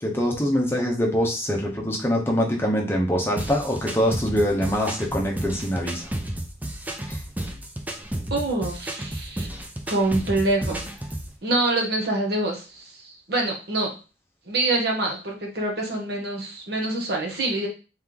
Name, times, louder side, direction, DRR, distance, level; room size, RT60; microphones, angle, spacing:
voice 1, 0.0-6.1 7.1-7.2, equal, 15° left, -1 dB, 0.9 m, -24 dB
sound 1, 3.4-11.3, right 1 dB, 10° right, 0.4 m, -32 dB
voice 2, 8.3-9.5 9.9-10.8 11.4-14.0 14.5-17.7, right 2 dB, 60° right, 0 dB, 1.2 m, -25 dB
3.4 x 3.1 x 3.8 m, 0.33 s
head